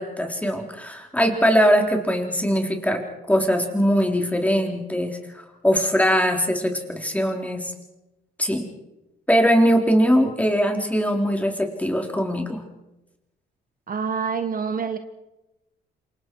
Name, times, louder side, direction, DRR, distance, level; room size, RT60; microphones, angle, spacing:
voice 1, 0.0-5.2 5.6-7.7 8.4-8.7 9.3-12.6, equal, 5° left, 2 dB, 3.9 m, -21 dB
voice 2, 13.9-15.0, right 6 dB, 45° right, 8 dB, 1.5 m, -26 dB
27.5 x 24.5 x 4.8 m, 0.96 s
cardioid pair, 90°, 20 cm